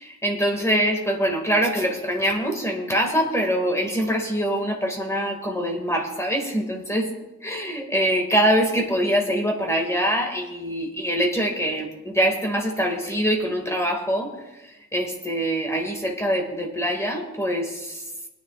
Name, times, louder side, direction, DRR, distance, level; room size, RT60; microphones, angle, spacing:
voice 1, 0.0-7.1 7.4-14.3 14.9-18.0, equal, 10° left, 1 dB, 2.1 m, -24 dB
20.0 x 10.0 x 2.5 m, 1.0 s
cardioid pair, 90°, 30 cm